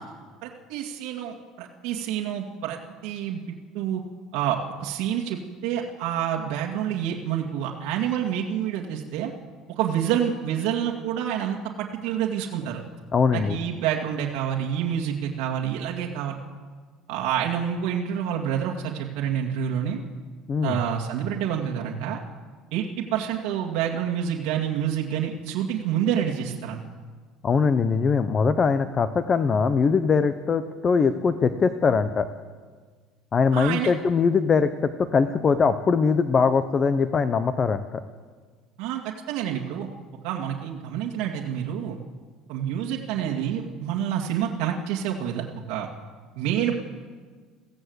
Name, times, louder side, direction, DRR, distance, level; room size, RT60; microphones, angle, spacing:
voice 1, 0.4-4.0 4.3-9.3 9.7-12.8 13.3-16.4 17.1-20.0 20.6-22.2 22.7-26.8 33.5-33.9 38.8-39.9 40.2-42.0 42.5-45.9 46.4-46.8, right 9 dB, 65° right, -1 dB, 2.1 m, -28 dB
voice 2, 13.1-13.6 20.5-20.8 27.4-32.3 33.3-37.8, left 5 dB, 20° left, 11 dB, 0.7 m, -22 dB
22.5 x 16.0 x 8.0 m, 1.6 s
cardioid pair, 170°, 0 cm